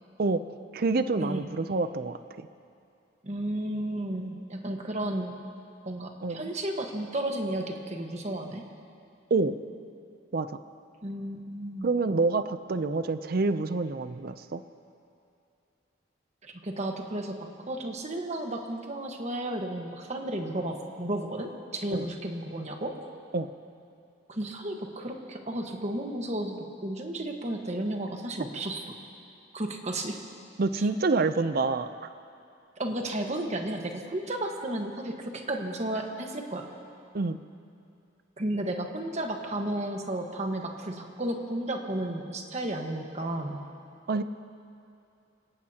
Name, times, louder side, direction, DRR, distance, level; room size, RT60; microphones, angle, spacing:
voice 1, 0.7-2.5 6.2-6.5 9.3-9.6 10.3-10.5 11.8-14.6 21.9-22.1 23.3-23.5 30.6-31.9 37.1-37.4 44.1-44.2, right 3 dB, 50° right, 11 dB, 0.5 m, -27 dB
voice 2, 3.2-5.4 5.8-8.6 11.0-11.9 16.4-23.0 24.3-29.0 29.5-30.2 30.8-30.9 32.8-36.7 38.4-43.6, right 1 dB, 35° right, 3 dB, 1.4 m, -33 dB
25.5 x 17.5 x 2.9 m, 2.5 s
head